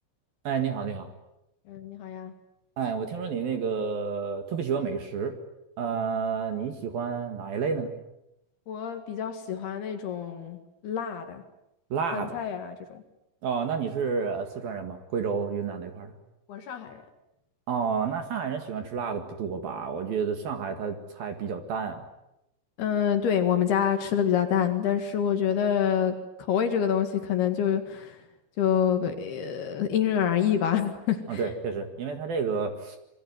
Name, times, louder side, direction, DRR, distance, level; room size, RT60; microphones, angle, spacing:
voice 1, 0.4-1.1 2.8-5.4 5.8-7.9 11.9-12.4 13.4-16.1 17.7-22.1 31.3-33.0, right 6 dB, 55° right, 7 dB, 3.1 m, -30 dB
voice 2, 1.7-2.3 8.7-10.6 10.8-11.4 12.1-13.0 16.5-17.0 22.8-28.2 28.6-31.4, left 8 dB, 60° left, 7 dB, 3.4 m, -27 dB
27.0 x 23.5 x 9.4 m, 0.86 s
omnidirectional pair, 5.8 m